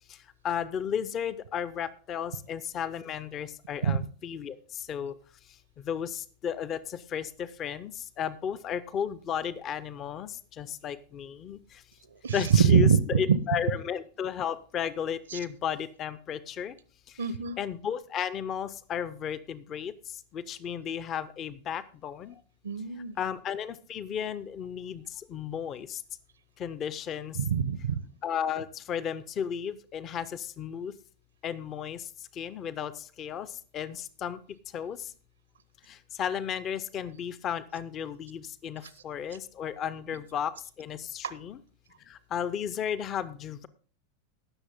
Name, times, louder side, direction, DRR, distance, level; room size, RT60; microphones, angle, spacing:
voice 1, 0.4-5.1 5.8-11.6 12.3-16.8 17.6-19.9 20.3-22.4 23.2-26.0 26.6-27.4 28.2-30.9 31.4-32.1 32.3-33.5 33.7-34.4 34.7-35.1 35.9-40.5 40.8-41.6 42.1-43.7, left 8 dB, 30° left, 16 dB, 0.7 m, -34 dB
voice 2, 12.2-13.2 15.3-15.4 17.2-17.6 22.6-23.2 27.3-28.0 41.2-41.4, right 7 dB, 70° right, 16 dB, 0.7 m, -24 dB
18.0 x 6.5 x 3.6 m, 0.41 s
figure-of-eight pair, 90°, 0 cm